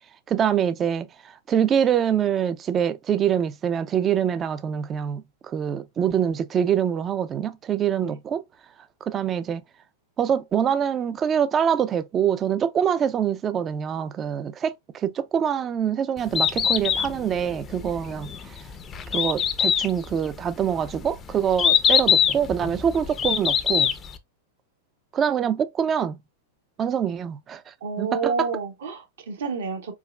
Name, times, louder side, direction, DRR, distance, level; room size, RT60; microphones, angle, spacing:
voice 1, 0.3-1.1 1.5-8.4 9.0-9.6 10.2-18.6 19.1-23.9 25.1-26.2 26.8-28.5, right 8 dB, 30° right, 0.4 m, -25 dB
Bird, 16.2-24.2, left 8 dB, 25° left, 0.5 m, -23 dB
voice 2, 27.8-29.9, right 5 dB, 70° right, 1.0 m, -29 dB
4.6 x 2.3 x 2.2 m
hypercardioid pair, 105°, 0 cm